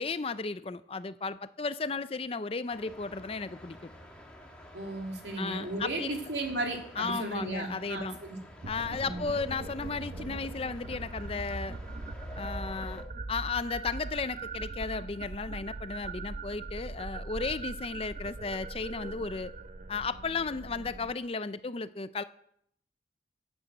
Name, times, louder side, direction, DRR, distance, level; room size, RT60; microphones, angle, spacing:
voice 1, 0.0-3.9 5.4-6.3 7.0-8.2 8.7-11.8 12.4-19.5 19.9-22.2, left 4 dB, 35° left, 0.5 m, -34 dB
sound 1, 2.7-13.0, left 1 dB, 5° left, 2.1 m, -50 dB
voice 2, 4.7-8.4 9.0-9.3, right 2 dB, 75° right, 2.8 m, -35 dB
sound 2, 8.6-21.1, right 3 dB, 45° right, 0.7 m, -41 dB
12.5 x 8.9 x 8.0 m
head